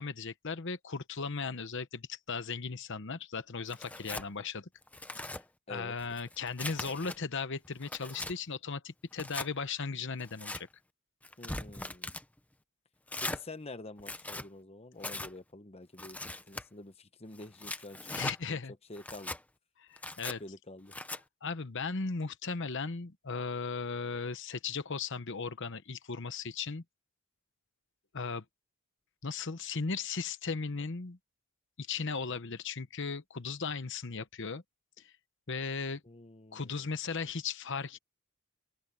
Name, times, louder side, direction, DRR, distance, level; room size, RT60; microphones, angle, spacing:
voice 1, 0.0-4.7 5.2-5.3 5.7-10.7 18.1-18.7 19.8-20.4 21.4-26.8 28.1-28.4 29.2-31.2 31.8-34.6 35.0-35.1 35.5-36.0 36.5-38.0, left 4 dB, 55° left, 1.0 m, -37 dB
Tearing, 3.7-4.3 4.8-5.4 6.0-7.2 7.6-8.3 9.1-9.5 10.2-10.6 11.2-12.2 13.1-13.4 14.0-14.5 15.0-15.3 16.0-16.6 17.4-18.4 19.0-19.4 20.0-20.4 20.9-21.2, left 2 dB, 5° left, 0.8 m, -40 dB
voice 2, 11.4-12.1 13.2-16.2 16.4-18.2 18.5-18.6 18.9-19.3 20.2-20.9 36.0-36.9, left 2 dB, 25° left, 1.0 m, -48 dB
open air
head